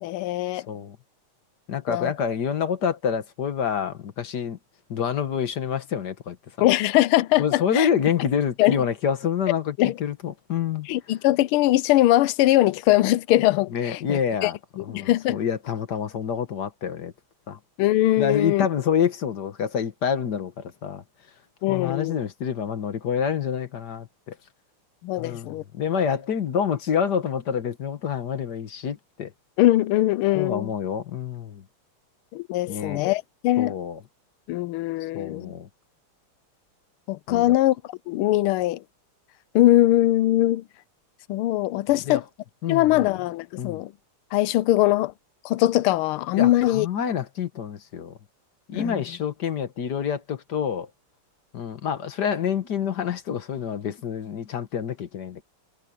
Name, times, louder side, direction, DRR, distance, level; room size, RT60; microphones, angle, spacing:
voice 1, 0.0-0.7 1.9-2.1 6.6-7.9 8.6-8.7 9.8-10.0 10.9-14.5 14.8-15.4 17.8-18.7 21.6-22.1 25.0-25.6 29.6-30.7 32.3-33.7 34.5-35.5 37.1-37.8 38.1-38.8 39.5-40.6 41.3-42.2 42.7-43.9 44.3-45.1 45.4-46.9 48.7-49.0, left 15 dB, 80° left, 1.4 m, -21 dB
voice 2, 1.7-4.6 4.9-6.4 7.4-10.9 13.7-17.1 17.5-17.6 18.2-21.0 21.7-24.4 25.2-29.3 30.3-31.6 32.7-33.0 33.6-34.0 35.1-35.7 37.3-37.5 42.1-42.2 42.6-43.1 43.6-43.8 46.4-48.1 48.7-50.9 51.5-55.4, left 7 dB, 55° left, 1.7 m, -27 dB
omnidirectional pair, 2.4 m